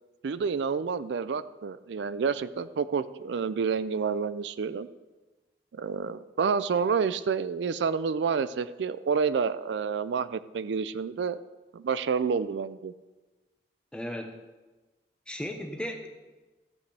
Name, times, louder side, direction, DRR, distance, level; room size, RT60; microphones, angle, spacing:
voice 1, 0.2-4.9 5.8-11.4 11.7-12.9, right 5 dB, 85° right, 15 dB, 0.4 m, -29 dB
voice 2, 13.9-14.4 15.3-16.1, equal, 5° left, 3 dB, 0.9 m, -35 dB
14.0 x 8.1 x 3.4 m, 1.2 s
head